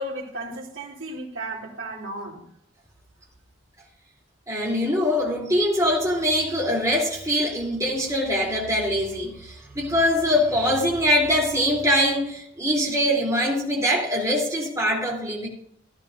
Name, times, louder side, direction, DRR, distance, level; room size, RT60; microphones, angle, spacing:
voice 1, 0.0-2.4, right 1 dB, 75° right, 2.9 m, -34 dB
voice 2, 4.5-15.5, equal, 15° right, 3.1 m, -23 dB
15.0 x 12.0 x 2.6 m
head